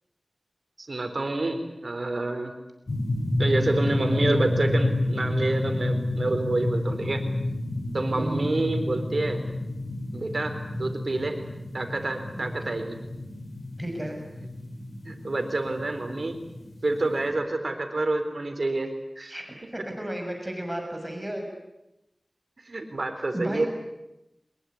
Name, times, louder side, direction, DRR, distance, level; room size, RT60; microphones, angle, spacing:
voice 1, 0.8-2.5 3.4-7.2 7.9-9.4 10.1-11.4 11.7-13.0 15.1-16.4 16.8-19.4 22.7-23.7, right 2 dB, 70° right, 7 dB, 4.0 m, -28 dB
sound 1, 2.9-17.3, left 1 dB, 90° left, 5.6 m, -30 dB
voice 2, 8.1-8.5 12.4-12.5 13.8-14.2 19.3-21.5 23.3-23.7, right 1 dB, 15° right, 3 dB, 6.7 m, -33 dB
23.5 x 21.5 x 9.5 m, 0.91 s
wide cardioid pair, 65°, 0 cm